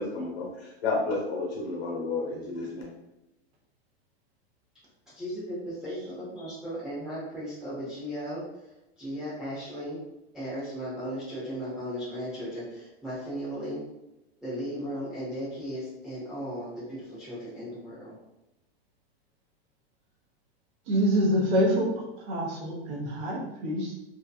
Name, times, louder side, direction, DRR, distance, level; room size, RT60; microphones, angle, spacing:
voice 1, 0.0-2.9, left 3 dB, 75° left, -1 dB, 1.0 m, -31 dB
voice 2, 5.1-8.4 9.0-10.0 10.3-13.8 14.4-18.2, equal, ahead, -11 dB, 0.8 m, -36 dB
voice 3, 20.9-21.9 22.2-23.9, equal, 40° right, -2 dB, 0.9 m, -26 dB
2.7 x 2.3 x 2.3 m, 0.94 s
supercardioid pair, 135°, 32 cm